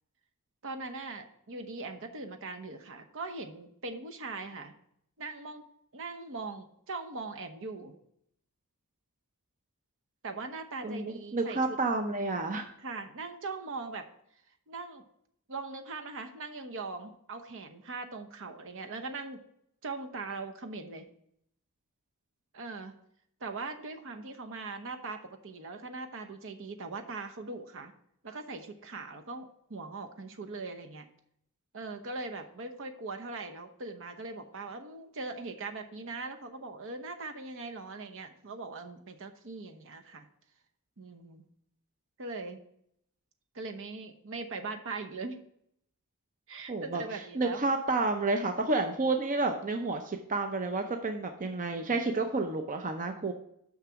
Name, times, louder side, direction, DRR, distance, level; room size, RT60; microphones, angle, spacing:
voice 1, 0.6-4.7 5.2-5.7 5.9-8.0 10.2-11.8 12.8-14.1 14.7-15.0 15.5-19.4 19.8-21.0 22.5-22.9 23.4-27.9 28.2-31.1 31.7-40.3 41.0-41.4 42.2-42.6 43.5-45.4 46.5-47.6, right 3 dB, 60° right, 6 dB, 0.9 m, -40 dB
voice 2, 10.8-12.7 46.7-53.3, right 3 dB, 35° right, 5 dB, 0.6 m, -30 dB
6.6 x 6.0 x 5.7 m, 0.72 s
head